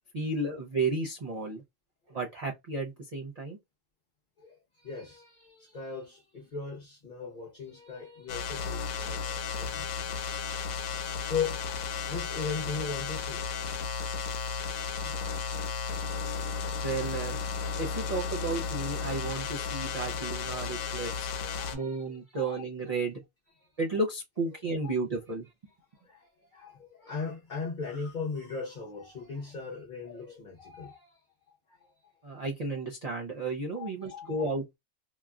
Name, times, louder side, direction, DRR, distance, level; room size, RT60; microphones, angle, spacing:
voice 1, 0.1-1.6 2.1-3.6 15.0-15.2 16.7-17.4 17.8-21.3 21.7-23.2 23.8-25.5 32.2-34.8, right 3 dB, 50° right, 0.5 m, -33 dB
voice 2, 4.4-14.0 17.9-18.1 21.4-22.0 22.3-22.6 26.0-26.3 26.5-31.2 31.8-31.9 33.8-34.5, left 5 dB, 40° left, 0.9 m, -39 dB
sound 1, 8.3-21.8, left 5 dB, 85° left, 1.0 m, -34 dB
2.9 x 2.4 x 2.3 m
omnidirectional pair, 1.4 m